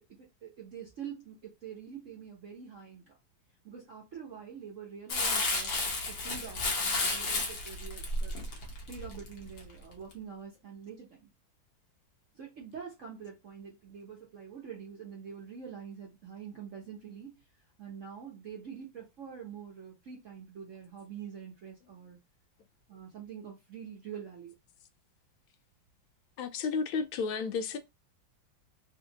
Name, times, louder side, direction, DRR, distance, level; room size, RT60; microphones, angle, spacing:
voice 1, 0.0-3.2 3.6-8.3 8.9-11.3 12.3-22.2 22.9-24.5, right 7 dB, 55° right, 0.9 m, -46 dB
Crumpling crinkling, 5.1-9.6 10.1-10.2, left 2 dB, 60° left, 1.4 m, -32 dB
voice 2, 26.4-27.8, left 5 dB, 80° left, 1.4 m, -32 dB
3.6 x 2.5 x 2.8 m
omnidirectional pair, 2.2 m